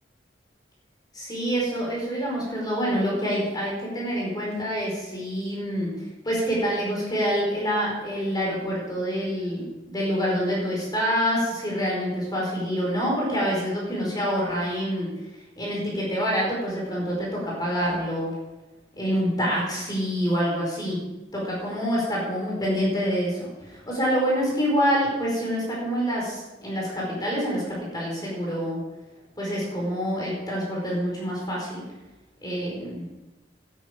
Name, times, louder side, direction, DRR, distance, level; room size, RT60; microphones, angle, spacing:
voice 1, 1.1-5.9 6.2-15.1 15.6-18.3 19.0-21.0 21.3-28.8 29.4-31.9 32.4-33.1, equal, 25° left, -3 dB, 4.7 m, -26 dB
12.5 x 10.5 x 5.1 m, 1.1 s
head